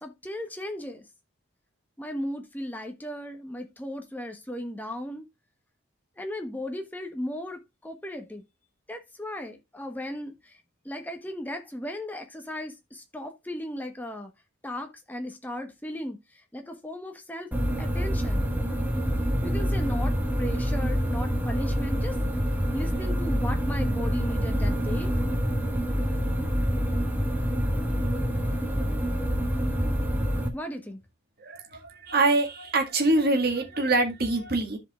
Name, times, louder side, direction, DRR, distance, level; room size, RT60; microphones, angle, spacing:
voice 1, 0.0-1.0 2.0-5.3 6.2-8.4 8.9-10.5 10.8-14.3 14.6-16.2 16.5-17.5 17.8-18.4 19.4-22.2 22.7-25.1 30.5-31.0, left 1 dB, 10° left, 1.1 m, -36 dB
sound 1, 17.5-30.5, equal, 10° right, 1.4 m, -26 dB
voice 2, 31.4-34.8, right 2 dB, 45° right, 1.9 m, -24 dB
14.5 x 5.1 x 2.4 m
head